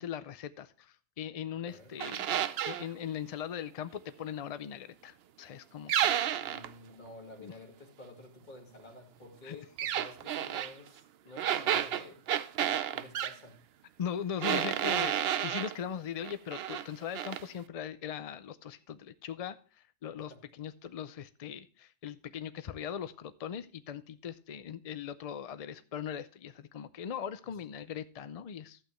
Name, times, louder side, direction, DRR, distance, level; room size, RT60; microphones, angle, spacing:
voice 1, 0.0-2.3 2.7-6.5 7.4-7.5 9.4-9.6 12.7-12.8 14.0-28.8, left 8 dB, 65° left, 13 dB, 0.3 m, -40 dB
sound 1, 2.0-2.9 5.9-6.7 9.8-10.7 11.4-13.3 14.4-15.7 16.2-16.9 17.1-17.4, right 10 dB, 65° right, 0.7 m, -31 dB
voice 2, 6.4-12.2 12.9-13.6 20.3-20.4, left 2 dB, 40° left, 2 dB, 2.1 m, -50 dB
12.0 x 8.2 x 3.1 m, 0.38 s
omnidirectional pair, 1.2 m